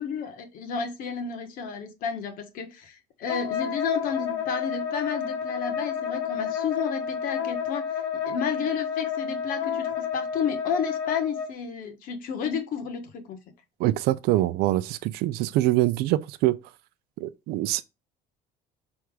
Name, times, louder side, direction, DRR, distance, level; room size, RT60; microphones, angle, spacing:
voice 1, 0.0-7.9 8.3-13.4, left 6 dB, 50° left, 1.4 m, -31 dB
Wind instrument woodwind instrument, 3.3-11.5, left 7 dB, 80° left, 1.7 m, -30 dB
voice 2, 13.8-16.6 17.2-17.8, right 16 dB, 65° right, 0.5 m, -24 dB
6.2 x 3.5 x 4.8 m
cardioid pair, 175°, 18 cm